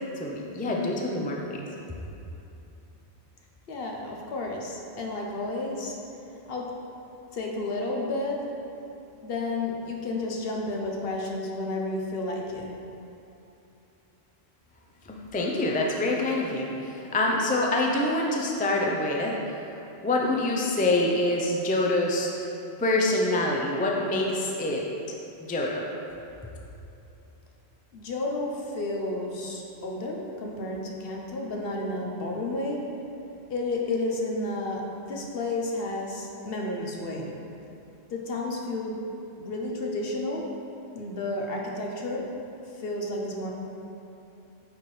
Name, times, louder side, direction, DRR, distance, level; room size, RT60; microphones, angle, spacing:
voice 1, 0.2-1.6 15.3-19.4 20.0-22.3 22.8-24.9 25.4-25.8, left 2 dB, 15° left, -1 dB, 0.4 m, -26 dB
voice 2, 3.7-6.0 6.5-6.7 7.3-8.4 9.2-12.7 27.9-32.8 33.5-37.3 38.1-39.0 39.4-40.5 40.9-42.3 42.8-43.5, left 2 dB, 60° left, 0 dB, 1.0 m, -31 dB
9.3 x 4.3 x 3.2 m, 2.8 s
omnidirectional pair, 1.1 m